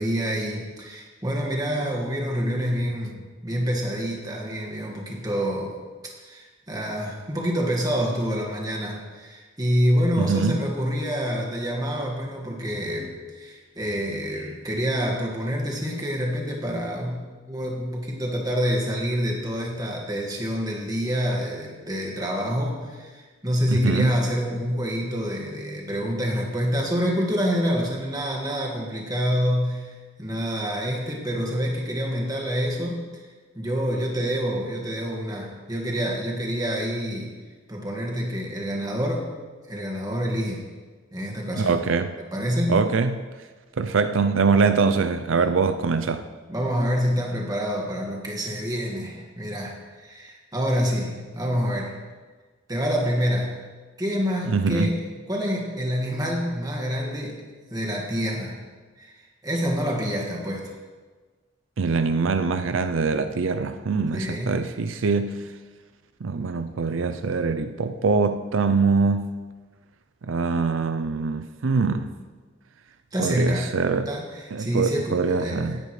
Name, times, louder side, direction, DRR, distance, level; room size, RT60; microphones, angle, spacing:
voice 1, 0.0-5.7 6.2-17.2 17.5-33.3 33.5-37.3 37.7-39.3 39.7-40.6 41.1-41.8 42.3-42.8 46.5-51.9 52.7-53.6 54.0-55.0 55.3-57.4 57.7-58.6 59.0-60.7 64.1-64.7 73.1-73.7 74.1-75.8, equal, 20° right, 1.9 m, -27 dB
voice 2, 10.2-10.6 23.7-24.1 41.6-42.1 42.7-43.2 43.8-46.3 54.5-54.9 61.8-65.4 66.2-69.3 70.2-72.1 73.2-74.1 74.5-75.8, right 4 dB, 85° right, 0.5 m, -23 dB
17.5 x 10.5 x 3.3 m
head